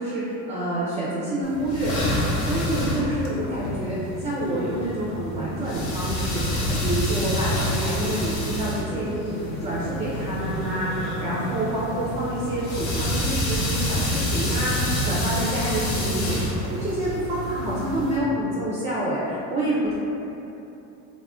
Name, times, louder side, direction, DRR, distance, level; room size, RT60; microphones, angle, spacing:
voice 1, 0.0-19.9, right 1 dB, 20° right, -7 dB, 0.3 m, -28 dB
sound 1, 1.4-18.2, left 1 dB, 65° left, 0.7 m, -28 dB
2.3 x 2.1 x 3.5 m, 2.9 s
supercardioid pair, 110°, 39 cm